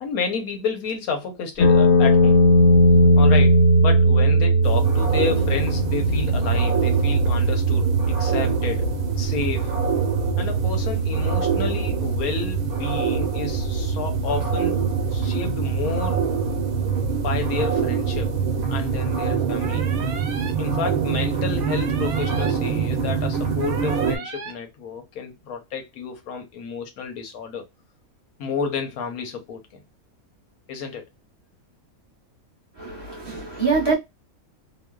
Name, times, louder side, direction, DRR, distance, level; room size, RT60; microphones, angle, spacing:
voice 1, 0.0-2.4 3.2-8.9 9.2-9.8 10.4-14.8 15.1-16.3 17.1-18.3 18.7-19.9 20.6-27.6 28.4-29.8 30.7-31.0, left 5 dB, 80° left, 1.3 m, -30 dB
sound 1, 1.6-15.6, right 1 dB, 55° left, 0.9 m, -20 dB
sound 2, 4.6-24.2, right 5 dB, 85° right, 1.1 m, -25 dB
sound 3, 19.6-20.5 21.6-22.5 23.6-24.5, right 5 dB, 60° right, 0.9 m, -35 dB
voice 2, 32.8-33.9, right 4 dB, 20° right, 0.9 m, -24 dB
3.0 x 2.1 x 2.2 m
omnidirectional pair, 1.5 m